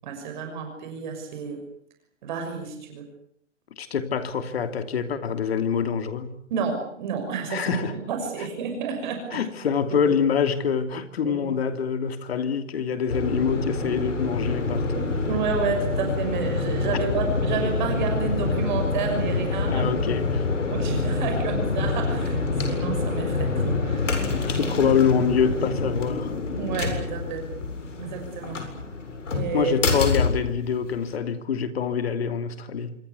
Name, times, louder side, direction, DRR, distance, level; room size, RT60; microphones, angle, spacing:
voice 1, 0.0-1.6 2.2-3.1 6.5-9.4 9.9-10.0 11.2-11.6 14.9-19.9 20.7-24.1 26.6-27.5 28.0-28.6 29.3-29.8, right 5 dB, 40° right, 4 dB, 6.4 m, -30 dB
voice 2, 3.8-6.4 7.5-7.9 9.3-14.9 19.7-20.5 24.4-26.3 29.5-33.0, left 6 dB, 55° left, 9 dB, 3.0 m, -25 dB
sound 1, 13.1-31.2, left 3 dB, 80° left, 7.8 m, -27 dB
26.5 x 23.5 x 8.3 m, 0.69 s
hypercardioid pair, 155°, 37 cm